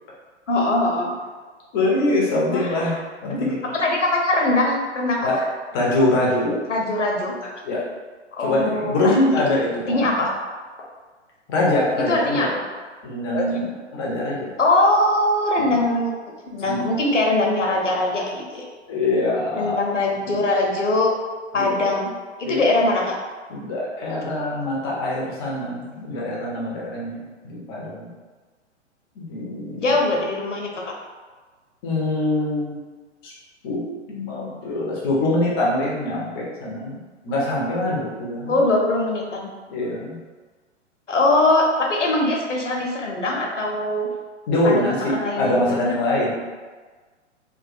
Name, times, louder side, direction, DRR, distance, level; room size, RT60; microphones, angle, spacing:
voice 1, 0.5-1.1 2.5-3.0 3.3-5.4 6.7-7.5 8.3-9.1 9.9-10.3 12.0-12.6 13.3-13.6 14.6-16.1 16.5-18.6 19.6-21.1 21.5-22.1 22.4-23.2 29.8-30.9 38.5-39.5 41.1-44.1 44.6-45.8, left 2 dB, 85° left, 0 dB, 0.7 m, -22 dB
voice 2, 1.7-3.0 3.2-3.6 5.2-5.4 5.7-6.6 7.6-7.8 8.4-10.1 11.5-12.5 13.0-14.5 15.6-15.8 16.6-16.8 18.9-19.8 20.3-20.4 21.5-21.8 22.4-22.7 23.5-28.1 29.2-29.9 31.8-32.8 33.2-33.3 33.6-38.6 39.7-40.2 44.5-46.3, left 1 dB, 20° left, -4 dB, 0.5 m, -24 dB
2.9 x 2.2 x 2.5 m, 1.4 s
figure-of-eight pair, 115°, 36 cm